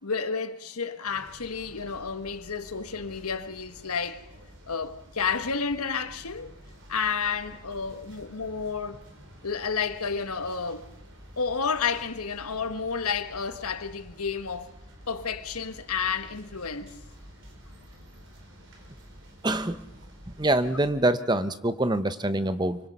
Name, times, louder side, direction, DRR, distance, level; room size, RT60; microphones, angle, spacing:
voice 1, 0.0-4.2 4.7-6.5 6.9-9.0 9.4-10.9 11.4-14.7 15.1-17.0, left 5 dB, 80° left, 1.5 m, -31 dB
sound 1, 1.1-20.9, equal, 55° right, 4.7 m, -50 dB
voice 2, 19.4-19.9 20.3-22.8, right 1 dB, 20° right, 0.9 m, -25 dB
25.0 x 24.0 x 5.4 m
head